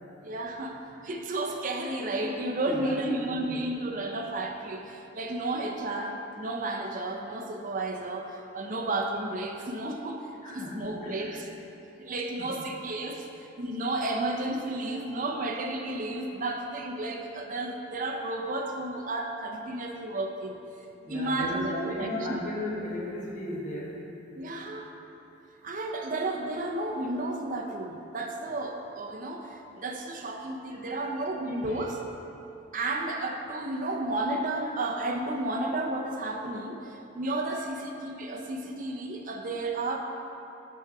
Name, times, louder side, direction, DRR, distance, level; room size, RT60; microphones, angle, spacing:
voice 1, 0.2-11.5 12.0-13.3 13.6-20.6 21.1-22.4 24.3-24.9 25.6-32.0 32.7-40.0, right 2 dB, 40° right, 1 dB, 0.5 m, -32 dB
voice 2, 2.7-3.0 3.3-3.6 10.4-11.4 12.4-12.5 21.0-24.1 30.8-31.2 31.6-31.8, left 1 dB, 35° left, -5 dB, 1.0 m, -36 dB
6.1 x 4.6 x 5.8 m, 3.0 s
head